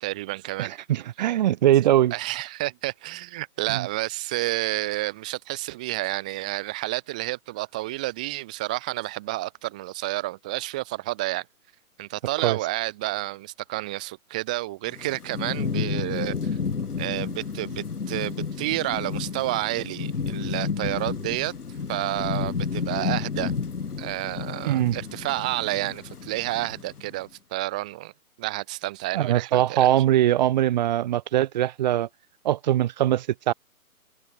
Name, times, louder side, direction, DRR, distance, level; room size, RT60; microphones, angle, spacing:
voice 1, 0.0-0.7 2.1-11.4 12.0-16.3 17.0-21.5 21.9-23.5 24.0-28.1 28.4-30.0, right 19 dB, 5° right, 0.7 m, -30 dB
voice 2, 0.6-2.1 3.7-3.9 12.4-12.6 24.7-24.9 29.1-32.1 32.4-33.5, right 12 dB, 30° right, 2.1 m, -22 dB
Thunderstorm / Rain, 14.9-27.1, left 5 dB, 80° left, 2.1 m, -31 dB
hypercardioid pair, 155°, 44 cm